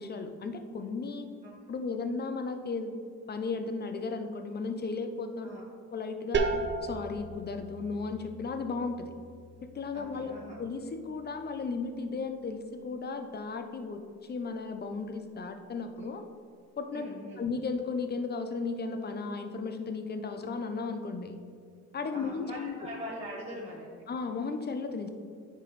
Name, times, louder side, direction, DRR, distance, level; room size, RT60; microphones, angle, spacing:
voice 1, 0.0-1.3 1.7-2.9 3.3-5.5 5.9-6.4 6.8-9.1 9.7-14.0 14.3-16.2 16.8-17.1 17.4-21.4 21.9-22.7 24.1-25.1, left 4 dB, 35° left, 7 dB, 0.7 m, -35 dB
voice 2, 1.4-1.7 5.4-5.6 9.9-10.6 16.9-17.5 22.1-24.0, equal, 20° right, -6 dB, 1.1 m, -42 dB
sound 1, 6.3-11.9, right 3 dB, 40° right, 0.7 m, -36 dB
9.8 x 4.5 x 3.2 m, 2.1 s
cardioid pair, 90°, 30 cm